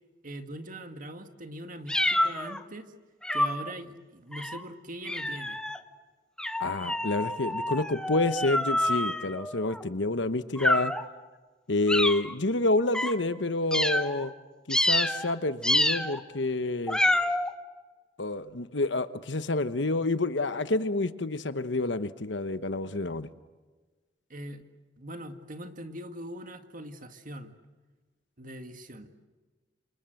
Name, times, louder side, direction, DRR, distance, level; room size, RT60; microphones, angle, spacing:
voice 1, 0.2-2.9 3.3-5.6 24.3-24.6 25.0-27.5 28.4-29.3, right 1 dB, 50° right, 7 dB, 2.0 m, -41 dB
sound 1, 1.9-2.6 3.2-3.7 4.3-4.6 5.0-5.8 6.4-9.8 10.6-11.1 11.9-12.3 12.9-13.1 13.7-14.2 14.7-15.3 15.6-16.2 16.9-17.5, left 1 dB, 5° left, 1.1 m, -28 dB
voice 2, 6.6-10.9 11.7-14.3 14.7-17.0 18.2-23.3, left 2 dB, 75° left, 12 dB, 1.2 m, -28 dB
27.5 x 27.5 x 7.9 m, 1.3 s
head